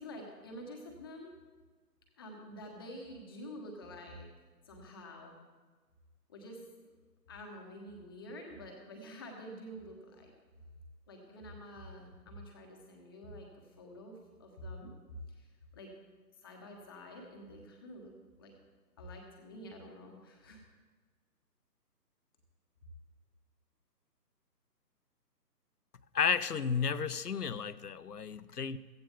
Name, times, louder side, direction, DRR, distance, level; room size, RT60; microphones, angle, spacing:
voice 1, 0.0-1.3 2.2-4.3 4.6-5.4 6.3-6.6 7.3-10.3 11.1-14.9 15.3-15.5 15.7-15.9 16.4-18.1 18.4-18.5 19.0-20.6, equal, 15° left, 1 dB, 1.2 m, -48 dB
voice 2, 26.1-28.8, left 6 dB, 65° left, 16 dB, 0.7 m, -32 dB
15.5 x 15.5 x 3.6 m, 1.4 s
figure-of-eight pair, 145°, 50 cm